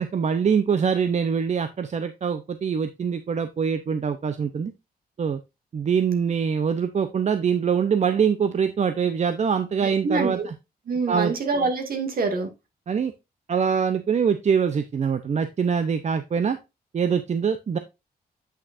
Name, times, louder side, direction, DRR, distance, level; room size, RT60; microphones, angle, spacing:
voice 1, 0.0-4.7 5.2-5.4 5.7-10.5 11.1-11.3 12.9-13.1 13.5-16.6 16.9-17.8, right 6 dB, 45° right, 10 dB, 0.7 m, -24 dB
voice 2, 9.8-10.5 10.9-12.5, right 4 dB, 65° right, 6 dB, 2.1 m, -25 dB
8.3 x 6.2 x 2.5 m, 0.24 s
cardioid pair, 95°, 16 cm